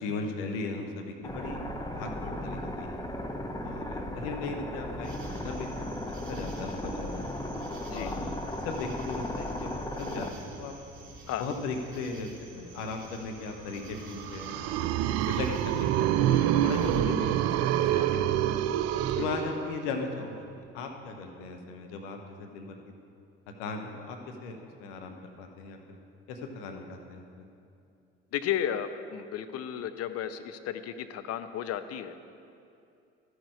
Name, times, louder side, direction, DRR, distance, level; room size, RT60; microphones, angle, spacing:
voice 1, 0.0-1.6 1.9-3.0 3.6-5.9 6.3-7.2 7.9-8.4 8.6-10.7 11.4-14.9 15.2-18.5 19.1-22.8 23.6-26.0 26.3-27.4, left 4 dB, 75° left, 4 dB, 1.1 m, -37 dB
sound 1, 1.2-10.3, left 1 dB, 10° left, 1.0 m, -36 dB
sound 2, 5.0-17.0, right 3 dB, 40° right, 2.7 m, -49 dB
sound 3, 14.1-20.0, right 11 dB, 55° right, 0.5 m, -27 dB
voice 2, 28.3-32.2, left 10 dB, 55° left, 10 dB, 0.7 m, -33 dB
13.0 x 6.4 x 4.8 m, 2.5 s
hypercardioid pair, 55°, 30 cm